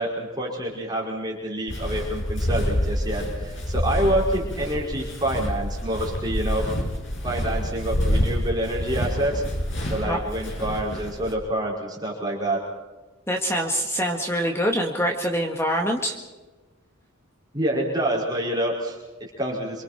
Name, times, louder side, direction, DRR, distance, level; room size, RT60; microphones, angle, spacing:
voice 1, 0.0-6.6 7.2-9.4 9.9-12.6 17.5-19.8, right 1 dB, 20° right, -3 dB, 5.3 m, -27 dB
Walk footsteps, 1.7-11.3, equal, 60° left, 6.5 m, -27 dB
voice 2, 13.3-16.2, equal, 10° left, 2 dB, 1.8 m, -25 dB
28.0 x 26.5 x 4.5 m, 1.2 s
head